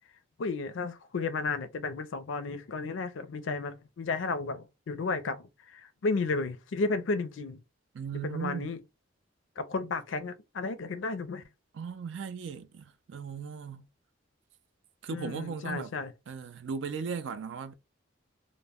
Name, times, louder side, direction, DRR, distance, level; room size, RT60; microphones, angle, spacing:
voice 1, 0.4-7.6 8.2-8.8 9.6-11.4 15.1-16.1, left 3 dB, 80° left, 0.4 m, -33 dB
voice 2, 7.9-8.8 11.7-13.9 15.0-15.9 16.3-17.7, right 6 dB, 70° right, 0.4 m, -37 dB
2.1 x 2.1 x 3.4 m
head